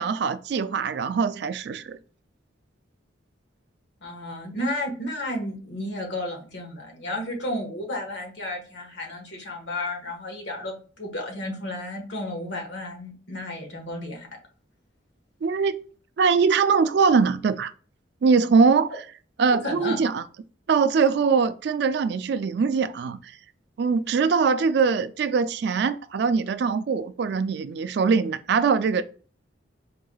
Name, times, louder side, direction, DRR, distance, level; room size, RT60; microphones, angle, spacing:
voice 1, 0.0-2.0 15.4-15.8 16.2-17.7 18.2-19.0 19.4-20.2 20.7-23.3 23.8-29.0, right 5 dB, 60° right, 0.3 m, -22 dB
voice 2, 4.0-14.3 19.6-20.0, left 1 dB, 70° left, 1.3 m, -32 dB
4.4 x 3.1 x 2.3 m
head